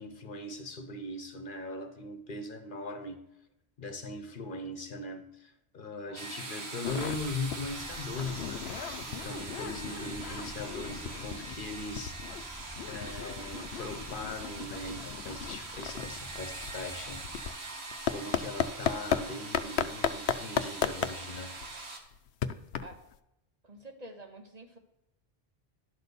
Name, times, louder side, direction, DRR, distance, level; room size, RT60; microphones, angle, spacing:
voice 1, 0.0-3.2 3.8-8.7 9.1-12.5 12.9-17.3 18.1-21.6, left 2 dB, 55° left, 1.0 m, -40 dB
sound 1, 6.2-22.0, right 3 dB, 85° right, 1.6 m, -42 dB
sound 2, 6.8-7.2 7.5-7.7 8.0-11.6 12.0-19.2 19.5-23.2, left 8 dB, 80° left, 0.8 m, -35 dB
sound 3, 6.8-17.5, equal, 10° right, 0.8 m, -50 dB
voice 2, 23.6-24.8, right 1 dB, 40° right, 1.1 m, -48 dB
11.5 x 4.2 x 6.8 m
omnidirectional pair, 1.1 m